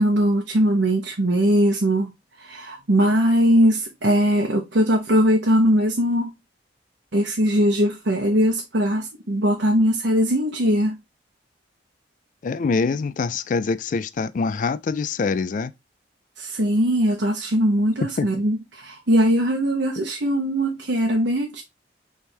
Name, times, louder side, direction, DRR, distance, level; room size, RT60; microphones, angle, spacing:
voice 1, 0.0-2.1 2.4-6.3 7.1-10.9 16.4-21.6, equal, 75° right, 0.9 m, -20 dB
voice 2, 12.4-15.7 18.2-18.4, left 4 dB, 45° left, 0.3 m, -24 dB
4.5 x 3.5 x 3.2 m
head